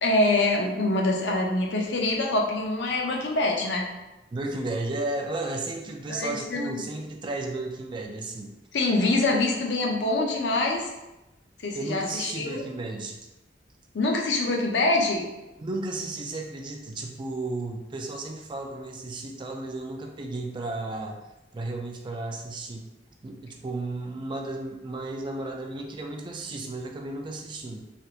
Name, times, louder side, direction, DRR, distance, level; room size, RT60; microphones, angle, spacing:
voice 1, 0.0-3.9 6.1-6.8 8.7-10.9 11.6-12.6 13.9-15.2, left 2 dB, 75° left, 0 dB, 0.6 m, -25 dB
voice 2, 4.3-8.5 9.3-9.4 11.7-13.2 15.6-21.2 21.5-22.9 23.2-27.8, right 2 dB, 25° right, 2 dB, 0.3 m, -33 dB
3.3 x 2.8 x 2.4 m, 1.0 s
head